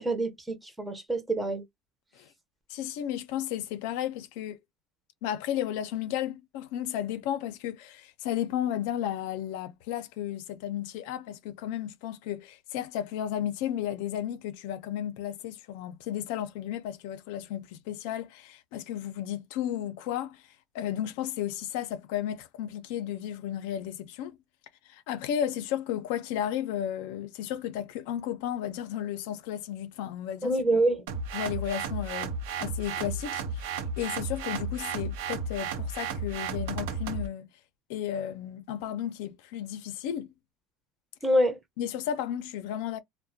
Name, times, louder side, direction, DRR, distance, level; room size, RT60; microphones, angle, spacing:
voice 1, 0.0-1.6 30.4-31.0 41.2-41.6, right 1 dB, 10° right, 0.6 m, -26 dB
voice 2, 2.7-4.6 5.2-20.4 20.7-24.4 24.9-30.5 31.3-37.5 37.9-40.3 41.8-43.0, left 10 dB, 75° left, 0.5 m, -33 dB
sound 1, 31.1-37.3, right 4 dB, 90° right, 0.7 m, -33 dB
2.4 x 2.1 x 2.6 m
cardioid pair, 155°, 0 cm